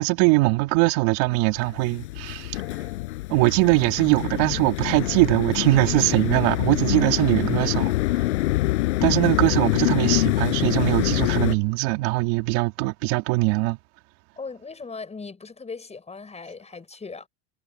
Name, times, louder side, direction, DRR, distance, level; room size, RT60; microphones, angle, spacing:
voice 1, 0.0-2.6 3.3-8.2 9.0-13.8, right 24 dB, 70° right, 2.9 m, -21 dB
sound 1, 1.6-11.6, left 18 dB, 80° left, 5.9 m, -25 dB
voice 2, 14.4-17.3, left 4 dB, 20° left, 5.7 m, -38 dB
hypercardioid pair, 95°, 34 cm